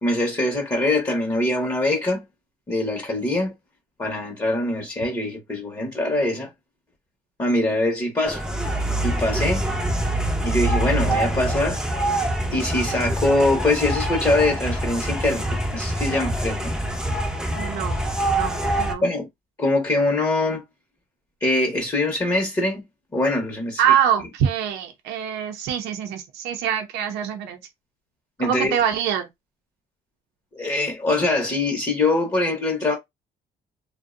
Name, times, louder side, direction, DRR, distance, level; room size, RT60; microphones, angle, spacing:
voice 1, 0.0-2.2 2.7-3.5 4.0-6.5 7.4-8.5 9.0-9.7 10.4-11.8 12.5-16.7 19.0-19.3 19.6-20.6 21.4-22.8 23.1-23.8 28.4-28.8 30.5-32.9, left 2 dB, 20° left, 0.8 m, -23 dB
sound 1, 8.2-18.9, right 1 dB, 5° right, 0.5 m, -25 dB
voice 2, 17.6-18.1 18.4-19.0 23.8-27.6 28.4-29.3, right 9 dB, 80° right, 0.5 m, -24 dB
2.5 x 2.1 x 2.4 m
cardioid pair, 110°, 17 cm